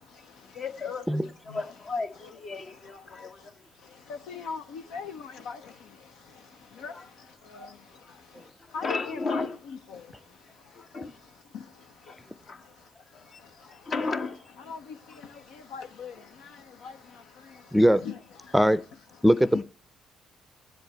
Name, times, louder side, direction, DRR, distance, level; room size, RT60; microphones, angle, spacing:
voice 1, 0.4-3.5 3.8-4.0 6.9-7.1 7.5-7.7 8.0-8.2 8.6-9.6 10.7-11.2 12.1-13.3 13.6-14.7 15.1-15.2 17.5-17.6, left 4 dB, 50° left, 1.2 m, -35 dB
voice 2, 4.3-5.6 6.8-6.9 7.5-7.7 8.7-10.0 14.7-14.8 15.7-16.1 16.8-16.9 18.0-18.2 19.5-19.6, left 5 dB, 75° left, 0.6 m, -38 dB
voice 3, 17.7-18.0 18.5-18.8 19.2-19.6, equal, ahead, 0.6 m, -20 dB
17.5 x 7.8 x 3.0 m
hypercardioid pair, 50°, 0 cm